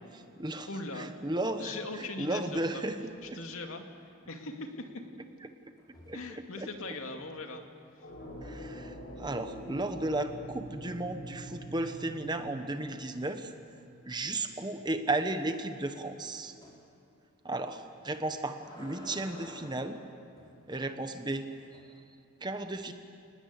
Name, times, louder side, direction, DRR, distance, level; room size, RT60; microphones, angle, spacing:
voice 1, 0.1-0.7 1.0-3.0 3.3-3.4 5.4-5.5 6.1-6.2 8.4-13.5 14.0-16.5 17.4-20.0 20.7-21.5 22.4-22.9, right 2 dB, 20° right, 7 dB, 1.2 m, -34 dB
voice 2, 0.7-1.1 1.6-2.8 3.2-3.8 4.3-4.9 6.1-7.6 20.7-21.0, left 2 dB, 75° left, 4 dB, 2.4 m, -40 dB
sound 1, 2.2-2.8 3.1-3.4 5.8-6.3 9.4-9.9 10.4-12.8 13.2-13.3 13.7-13.8 14.1-14.2 16.6-16.8 18.1-20.6 21.3-21.8, left 1 dB, 20° left, 4.5 m, -54 dB
sound 2, 8.0-13.9, right 1 dB, 45° left, 5.0 m, -45 dB
29.0 x 19.5 x 8.4 m, 2.6 s
head